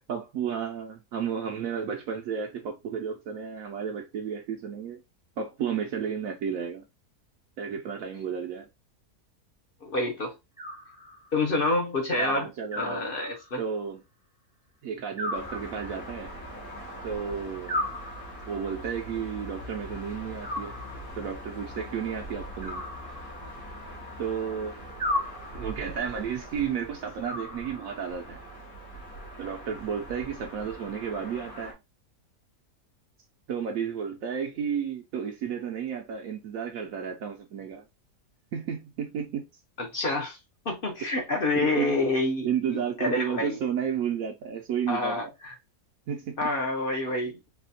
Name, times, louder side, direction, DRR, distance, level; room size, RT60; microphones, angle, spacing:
voice 1, 0.0-5.0 5.4-6.8 7.6-8.7 12.2-13.1 13.6-14.0 14.8-16.3 17.0-17.8 18.5-20.7 21.2-22.9 24.2-24.9 25.5-28.4 29.4-31.8 33.5-37.8 38.5-39.4 41.5-42.1 42.4-45.2 46.1-46.5, right 7 dB, 70° right, 0.9 m, -32 dB
voice 2, 9.8-10.3 11.3-12.5 12.8-13.6 39.8-40.4 40.6-43.6 44.9-45.5 46.4-47.4, left 2 dB, 50° left, 0.7 m, -28 dB
Animal, 10.6-11.5 12.7-13.7 15.2-16.3 17.7-18.7 20.4-21.3 22.6-23.7 25.0-25.9 27.2-28.1, left 1 dB, 5° right, 0.7 m, -35 dB
sound 1, 15.3-31.7, equal, 70° left, 1.8 m, -42 dB
4.2 x 2.3 x 2.6 m
omnidirectional pair, 1.6 m